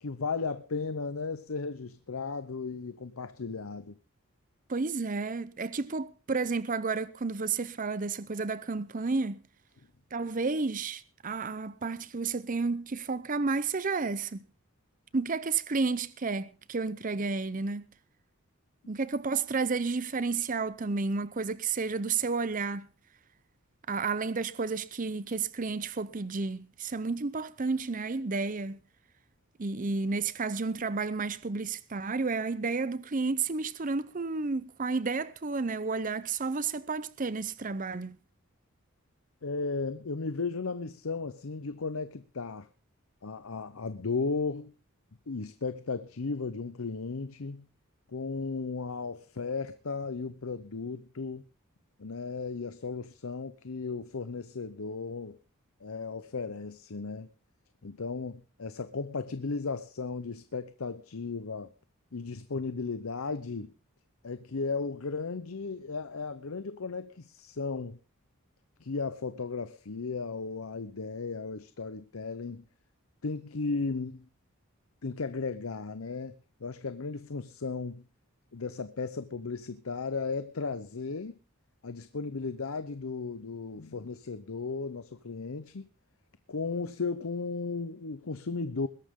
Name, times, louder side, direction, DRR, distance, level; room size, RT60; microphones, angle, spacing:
voice 1, 0.0-3.9 39.4-42.7 43.2-44.7 45.3-47.6 48.1-51.4 52.0-55.4 55.8-57.3 57.8-61.7 62.1-63.7 64.2-68.0 68.8-72.6 73.2-74.2 75.0-76.3 76.6-78.0 78.5-81.4 81.8-85.9 86.5-88.9, left 4 dB, 75° left, 0.8 m, -35 dB
voice 2, 4.7-9.4 10.1-14.5 15.1-17.8 18.9-22.9 23.9-28.8 29.6-38.2, right 4 dB, 40° right, 0.6 m, -31 dB
21.0 x 11.5 x 3.7 m
head